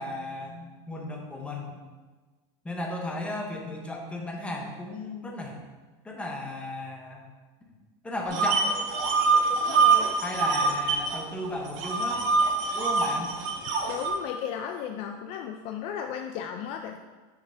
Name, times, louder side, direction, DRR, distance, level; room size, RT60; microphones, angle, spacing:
voice 1, 0.0-1.8 2.6-5.5 6.0-7.3 8.0-8.7 10.2-12.3 12.7-13.3, left 1 dB, 10° left, 0 dB, 1.0 m, -35 dB
sound 1, 8.3-11.2 11.4-14.1, right 4 dB, 50° right, 1.6 m, -24 dB
voice 2, 9.5-10.1 13.9-17.0, left 8 dB, 45° left, 5 dB, 0.4 m, -35 dB
6.7 x 6.4 x 3.8 m, 1.3 s
supercardioid pair, 160°, 15 cm